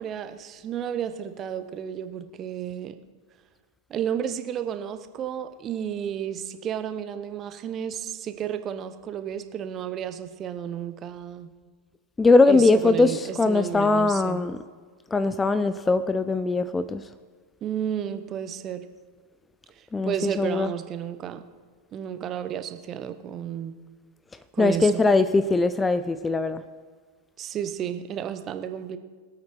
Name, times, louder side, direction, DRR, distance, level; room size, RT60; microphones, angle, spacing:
voice 1, 0.0-3.0 3.9-11.5 12.5-14.4 17.6-18.8 19.7-21.4 21.9-23.8 24.5-25.0 27.4-29.0, right 9 dB, 30° right, 10 dB, 0.9 m, -32 dB
voice 2, 12.2-14.6 15.1-17.0 19.9-20.7 24.6-26.6, left 3 dB, 10° left, 14 dB, 0.5 m, -21 dB
22.5 x 8.5 x 4.6 m, 1.5 s
figure-of-eight pair, 90°, 0 cm